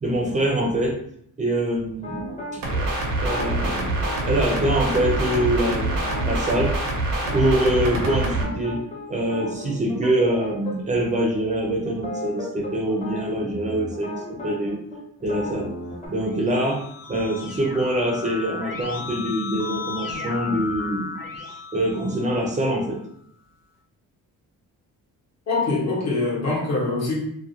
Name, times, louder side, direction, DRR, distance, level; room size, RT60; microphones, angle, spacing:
voice 1, 0.0-1.0 1.4-3.9 4.3-6.0 6.2-6.7 7.3-8.8 9.1-14.8 15.2-15.7 16.1-16.8 17.1-23.0, right 1 dB, 25° right, 0 dB, 0.4 m, -24 dB
sound 1, 2.0-2.5 3.2-6.6 7.2-10.7 11.0-11.2 11.5-16.1, left 1 dB, 20° left, 0.6 m, -34 dB
sound 2, 2.6-8.4, right 2 dB, 90° right, 0.6 m, -25 dB
Keyboard (musical), 16.1-22.8, left 4 dB, 90° left, 0.6 m, -35 dB
voice 2, 25.5-27.2, left 3 dB, 55° left, -4 dB, 0.8 m, -23 dB
2.4 x 2.1 x 2.7 m, 0.69 s
wide cardioid pair, 180°, 33 cm